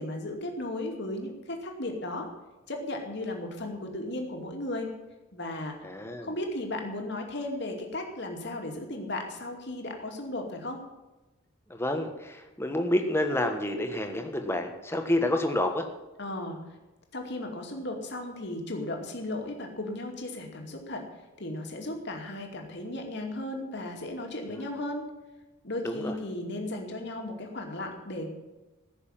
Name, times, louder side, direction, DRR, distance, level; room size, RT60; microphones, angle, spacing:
voice 1, 0.0-2.3 2.7-4.9 5.3-5.7 6.2-10.8 16.2-16.6 17.1-21.0 21.4-25.0 25.6-28.3, left 1 dB, 55° left, 2 dB, 2.5 m, -35 dB
voice 2, 5.8-6.3 11.7-15.8 24.5-24.7 25.8-26.2, left 1 dB, 10° left, 5 dB, 1.4 m, -29 dB
15.0 x 6.8 x 9.0 m, 1.1 s
head